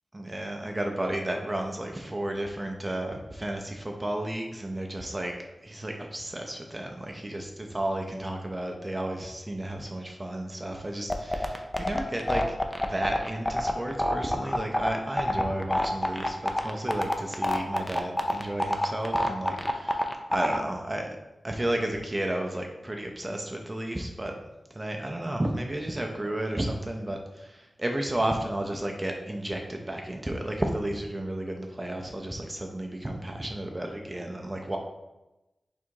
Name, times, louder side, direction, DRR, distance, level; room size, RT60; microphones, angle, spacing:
voice 1, 0.1-5.3 5.6-21.1 21.4-24.3 24.8-34.8, right 1 dB, 25° right, 2 dB, 0.5 m, -32 dB
sound 1, 11.1-20.6, left 1 dB, 20° left, 0.5 m, -26 dB
3.5 x 2.5 x 4.6 m, 0.99 s
cardioid pair, 45°, 0 cm